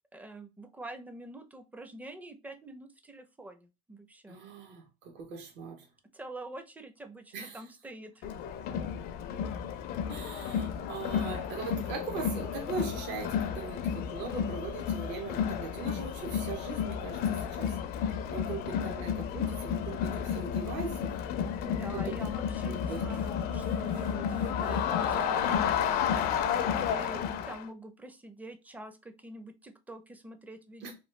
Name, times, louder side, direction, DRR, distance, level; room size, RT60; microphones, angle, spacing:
voice 1, 0.1-4.4 6.1-8.4 21.6-26.3 26.9-30.9, right 1 dB, 10° right, 0.5 m, -46 dB
voice 2, 4.3-5.9 7.3-7.6 10.1-17.8 18.1-21.1 21.9-22.0 22.7-23.0 30.8-30.9, right 4 dB, 60° right, 0.9 m, -40 dB
Crowd, 8.2-27.6, left 8 dB, 50° left, 0.4 m, -32 dB
sound 1, 20.2-27.1, right 2 dB, 80° right, 1.4 m, -56 dB
3.0 x 2.2 x 3.1 m
supercardioid pair, 100°, 20 cm